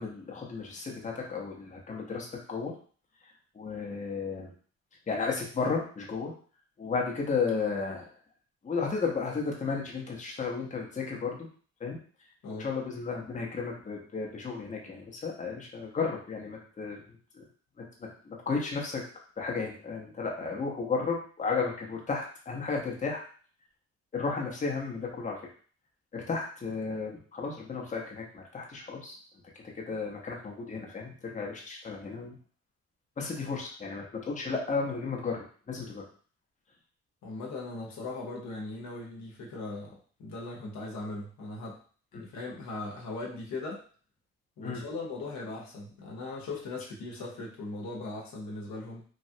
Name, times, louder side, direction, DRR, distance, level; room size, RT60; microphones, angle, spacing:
voice 1, 0.0-2.7 3.5-4.5 5.1-6.3 6.8-8.1 8.6-11.5 11.8-12.0 12.6-17.0 17.3-17.4 18.2-19.0 19.4-23.2 24.1-25.4 26.1-29.2 29.9-32.3 33.2-36.0 42.1-42.2 44.6-44.8, left 4 dB, 25° left, -1 dB, 0.8 m, -33 dB
voice 2, 37.2-41.8 42.1-43.8 44.6-49.0, left 2 dB, 65° left, -2 dB, 0.9 m, -39 dB
3.1 x 2.3 x 2.7 m, 0.43 s
cardioid pair, 90°, 30 cm